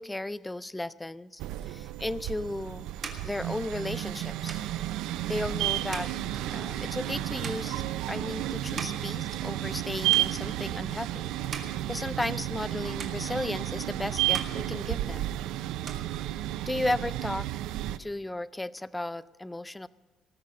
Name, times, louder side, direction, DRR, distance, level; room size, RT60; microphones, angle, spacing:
voice 1, 0.0-2.9 3.2-4.6 5.3-11.3 11.9-15.3 16.7-17.5 18.0-19.9, left 1 dB, 10° left, 17 dB, 0.3 m, -35 dB
sound 1, 1.4-18.0, right 14 dB, 80° right, 0.5 m, -32 dB
sound 2, 2.9-9.8 10.1-10.8 11.2-12.7 13.0-13.9 14.2-15.4 15.7-16.8, right 5 dB, 35° right, 1.7 m, -44 dB
19.0 x 6.5 x 7.6 m, 1.3 s
cardioid pair, 145°, 0 cm